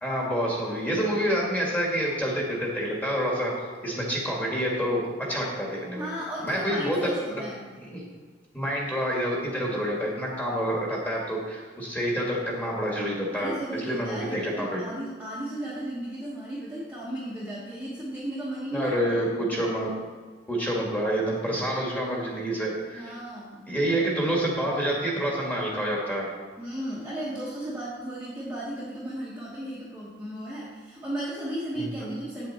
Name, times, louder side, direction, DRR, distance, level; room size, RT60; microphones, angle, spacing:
voice 1, 0.0-3.5 3.8-5.0 5.3-6.1 6.4-7.0 7.3-7.4 7.9-8.1 8.5-14.8 18.7-19.9 20.5-23.2 23.7-26.3 31.8-32.2, equal, 10° left, -3 dB, 1.8 m, -28 dB
voice 2, 5.9-7.6 13.3-18.9 22.9-23.7 24.0-24.1 26.6-32.5, right 1 dB, 10° right, -8 dB, 1.2 m, -35 dB
8.3 x 7.5 x 4.3 m, 1.5 s
head